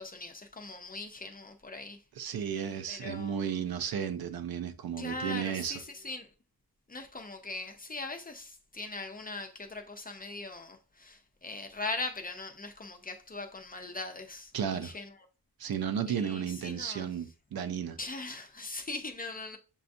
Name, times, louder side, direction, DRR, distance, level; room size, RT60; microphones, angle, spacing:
voice 1, 0.0-2.0 2.9-3.7 5.0-6.3 6.9-15.2 16.1-17.1 18.0-19.6, left 3 dB, 25° left, 0.5 m, -40 dB
voice 2, 2.2-5.8 14.5-14.9 15.6-18.0, right 8 dB, 65° right, 0.6 m, -33 dB
6.8 x 2.3 x 2.6 m
wide cardioid pair, 150°, 38 cm